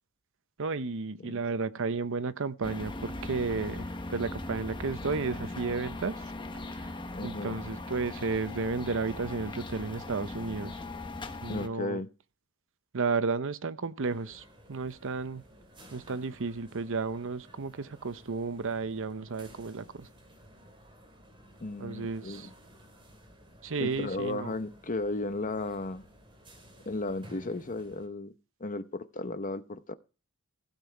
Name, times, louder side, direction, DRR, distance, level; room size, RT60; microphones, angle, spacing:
voice 1, 0.6-6.3 6.7-6.9 7.2-10.8 11.4-12.0 12.9-15.4 15.9-20.1 21.8-22.5 23.6-24.5, right 4 dB, 60° right, 0.8 m, -33 dB
sound 1, 2.6-11.7, left 2 dB, 20° left, 1.2 m, -39 dB
voice 2, 7.1-7.6 11.5-12.1 21.6-22.5 23.8-26.1 26.8-28.3 28.6-29.9, left 2 dB, 35° left, 0.9 m, -35 dB
sound 2, 14.0-28.1, equal, 25° right, 3.4 m, -54 dB
16.0 x 7.2 x 4.6 m
head